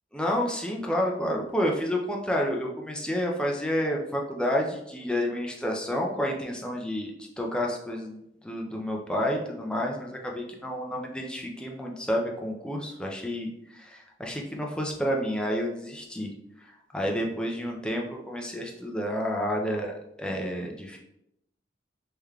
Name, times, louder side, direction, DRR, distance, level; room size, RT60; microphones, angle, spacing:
voice 1, 0.1-16.3 16.9-21.0, equal, 5° left, 0 dB, 0.4 m, -30 dB
3.5 x 3.2 x 2.3 m, 0.81 s
head